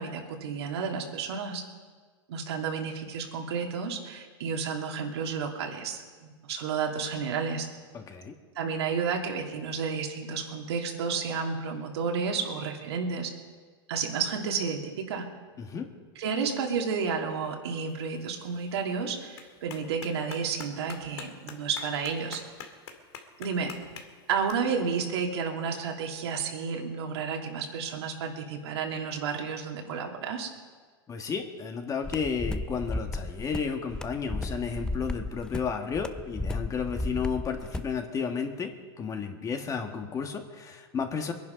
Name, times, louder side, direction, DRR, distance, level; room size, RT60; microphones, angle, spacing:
voice 1, 0.0-1.6 2.3-7.7 8.5-13.3 13.9-15.3 16.2-22.4 23.4-23.7 24.3-30.5, right 5 dB, 80° right, 1 dB, 2.7 m, -31 dB
voice 2, 7.9-8.3 15.6-15.9 31.1-41.3, left 6 dB, 25° left, 5 dB, 1.7 m, -32 dB
Clapping, 17.9-24.5, left 7 dB, 80° left, 2.1 m, -47 dB
sound 1, 32.0-38.0, left 2 dB, 5° left, 0.5 m, -34 dB
22.5 x 10.5 x 5.3 m, 1.5 s
supercardioid pair, 125°, 14 cm